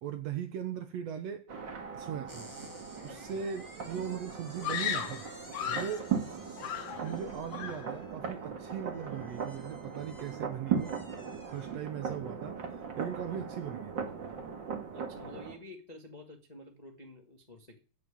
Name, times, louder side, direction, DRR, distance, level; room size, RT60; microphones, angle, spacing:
voice 1, 0.0-1.5 1.9-2.6 3.0-5.3 5.7-6.1 7.0-11.0 11.5-14.3, right 8 dB, 65° right, 1.8 m, -39 dB
sound 1, 1.5-15.6, right 6 dB, 45° right, 1.8 m, -38 dB
sound 2, 2.3-12.2, equal, 15° right, 0.7 m, -54 dB
voice 2, 3.1-3.4 5.6-5.9 14.9-17.8, left 2 dB, 50° left, 0.4 m, -50 dB
Screaming, 4.6-6.1 6.6-7.2 7.5-7.9, left 9 dB, 80° left, 2.7 m, -35 dB
8.2 x 7.6 x 8.4 m
omnidirectional pair, 3.8 m